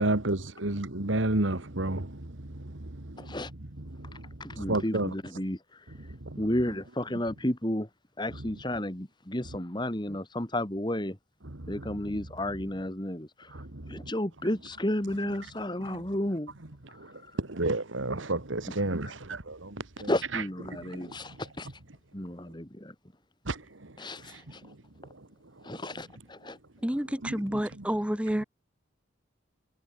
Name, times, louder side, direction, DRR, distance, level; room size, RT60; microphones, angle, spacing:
voice 1, 0.0-3.4 3.8-4.2 4.6-5.1 6.1-6.4 11.4-12.2 13.5-14.1 15.9-16.0 17.0-17.1 17.4-20.4 20.7-21.1 23.5-23.9 24.3-24.7 25.7-25.8 27.2-27.8 28.3-28.4, right 2 dB, 80° right, 2.1 m, -32 dB
voice 2, 3.2-3.5 4.4-5.6 6.4-7.9 8.2-11.2 11.7-13.3 13.9-16.5 20.1-21.7 22.1-22.9 24.0-24.6 25.6-26.6, left 1 dB, 20° left, 2.2 m, -32 dB
voice 3, 26.8-28.4, equal, 5° right, 1.1 m, -29 dB
head